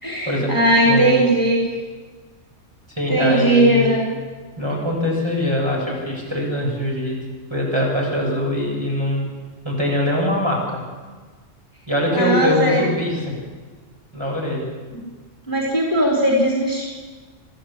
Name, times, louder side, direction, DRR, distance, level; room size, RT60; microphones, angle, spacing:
voice 1, 0.0-1.8 3.1-4.0 12.1-12.8 15.5-16.9, right 1 dB, 15° left, -3 dB, 3.2 m, -18 dB
voice 2, 0.8-1.2 2.9-3.9 4.6-7.2 7.5-9.3 9.6-10.6 11.9-13.3 14.1-14.7, left 1 dB, 20° right, -3 dB, 7.2 m, -22 dB
24.5 x 14.0 x 8.6 m, 1.4 s
omnidirectional pair, 1.3 m